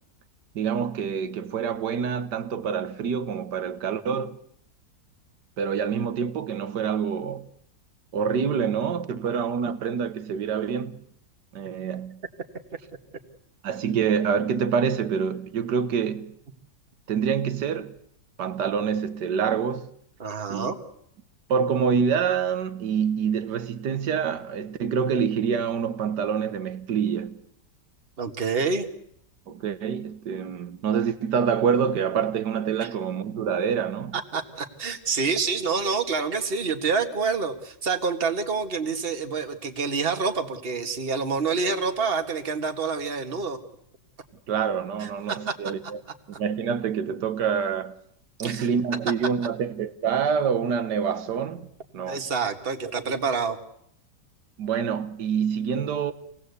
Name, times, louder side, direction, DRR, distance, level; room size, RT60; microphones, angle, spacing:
voice 1, 0.6-4.4 5.6-7.5 8.1-11.0 11.5-12.2 13.6-16.4 17.1-18.0 18.4-19.9 20.5-20.7 21.5-27.4 29.5-34.2 44.5-46.0 46.4-47.9 48.4-51.7 51.9-52.2 54.6-56.1, right 7 dB, 75° right, 1.8 m, -26 dB
voice 2, 20.2-20.8 28.2-28.9 32.8-32.9 34.1-43.6 45.0-45.6 48.4-48.7 52.1-53.6, right 5 dB, 35° right, 1.8 m, -27 dB
26.5 x 18.5 x 8.2 m
omnidirectional pair, 1.8 m